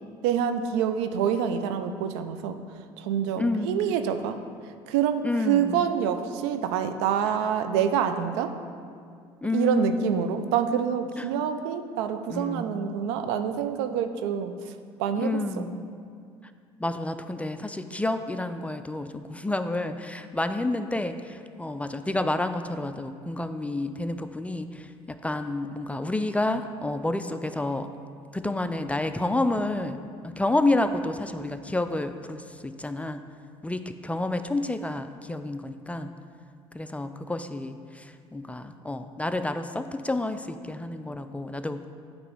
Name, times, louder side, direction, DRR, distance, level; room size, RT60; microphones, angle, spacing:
voice 1, 0.2-2.6 3.0-4.4 4.9-8.5 9.5-14.7 15.0-15.6, right 8 dB, 75° right, 9 dB, 0.4 m, -27 dB
voice 2, 3.4-4.0 5.2-5.9 9.4-10.4 11.2-11.3 12.3-12.9 15.2-15.9 16.8-27.9 28.3-30.0 30.2-33.2 33.6-36.1 36.7-41.9, left 2 dB, 10° left, 9 dB, 0.3 m, -29 dB
8.3 x 3.0 x 5.4 m, 2.2 s
hypercardioid pair, 65°, 14 cm